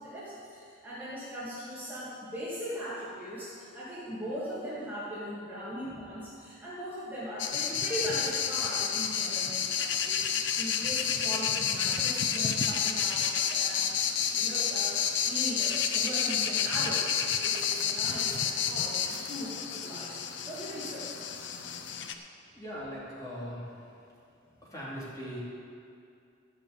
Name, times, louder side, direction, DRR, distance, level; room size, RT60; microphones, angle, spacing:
voice 1, 0.0-13.9 14.3-21.3, equal, 10° right, -10 dB, 2.3 m, -39 dB
sound 1, 7.4-22.1, left 7 dB, 70° left, 0.7 m, -30 dB
voice 2, 22.5-23.9 24.4-25.4, equal, 20° left, -8 dB, 2.9 m, -40 dB
13.5 x 5.7 x 8.0 m, 2.5 s
head